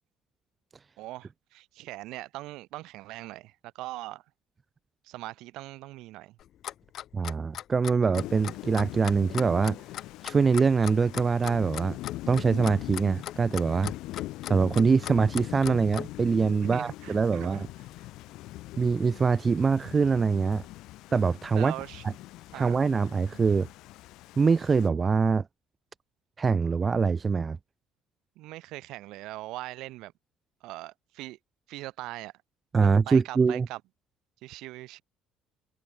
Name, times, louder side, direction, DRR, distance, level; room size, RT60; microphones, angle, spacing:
voice 1, 1.0-4.2 5.0-6.4 16.7-17.6 21.6-22.0 22.5-22.8 28.4-30.1 30.6-31.4 31.7-32.3 32.8-33.8 34.4-35.0, right 18 dB, 75° right, 7.4 m, -41 dB
Clock, 6.4-16.1, left 11 dB, 55° left, 2.0 m, -38 dB
voice 2, 7.1-9.8 10.2-12.0 12.3-13.9 14.5-17.7 18.8-20.6 21.1-21.7 22.0-22.1 22.5-23.7 24.4-25.5 26.4-27.6 32.7-33.7, right 5 dB, 25° right, 1.9 m, -24 dB
Thunder / Rain, 8.1-24.9, left 17 dB, 70° left, 1.9 m, -42 dB
cardioid pair, 120°, 0 cm